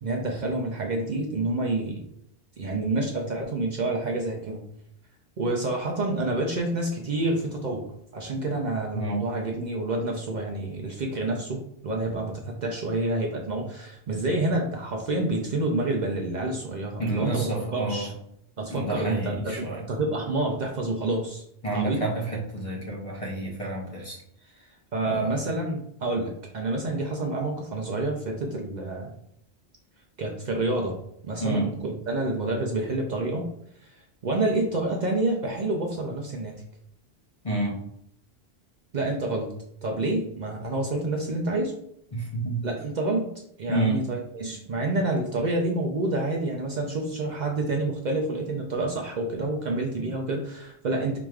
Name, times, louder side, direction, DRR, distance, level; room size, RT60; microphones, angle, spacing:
voice 1, 0.0-2.0 2.6-4.6 5.4-7.9 8.1-18.1 18.6-21.4 21.7-22.0 24.9-29.1 30.2-31.0 31.2-33.5 33.8-36.6 38.9-39.5 39.8-41.7 42.6-43.3 43.6-51.2, right 2 dB, 50° right, 1 dB, 0.6 m, -28 dB
voice 2, 17.0-18.1 18.7-19.8 21.6-24.2 25.0-25.3 31.4-31.7 37.4-37.8 42.1-42.6 43.7-44.0, right 2 dB, 35° left, -2 dB, 0.9 m, -29 dB
4.8 x 3.0 x 2.3 m, 0.74 s
omnidirectional pair, 1.0 m